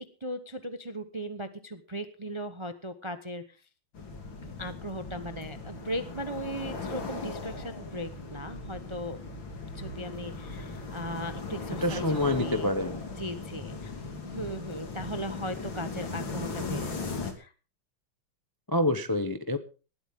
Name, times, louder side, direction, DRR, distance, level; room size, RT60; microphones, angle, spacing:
voice 1, 0.2-3.4 4.4-9.2 9.7-12.7 13.2-13.9 14.2-16.9 17.2-17.5, equal, 25° right, 10 dB, 0.6 m, -37 dB
sound 1, 3.9-17.3, left 4 dB, 65° left, 3.4 m, -38 dB
voice 2, 11.8-13.0 18.7-19.6, left 1 dB, 25° left, 9 dB, 0.5 m, -27 dB
19.5 x 13.0 x 3.7 m, 0.35 s
omnidirectional pair, 2.2 m